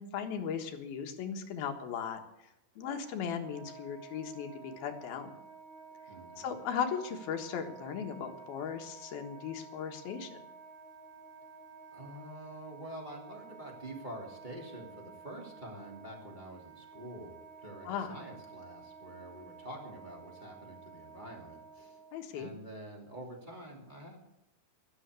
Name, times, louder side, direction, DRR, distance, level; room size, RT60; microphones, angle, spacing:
voice 1, 0.0-2.2 2.8-5.4 6.4-10.3 17.8-18.1 22.1-22.5, left 7 dB, 70° left, 5 dB, 3.3 m, -37 dB
Wind instrument woodwind instrument, 2.7-22.2, right 5 dB, 50° right, 4.6 m, -52 dB
voice 2, 6.1-6.6 11.9-22.0 22.3-24.2, right 1 dB, 15° right, -2 dB, 2.3 m, -47 dB
13.0 x 12.0 x 8.2 m, 0.85 s
omnidirectional pair, 4.6 m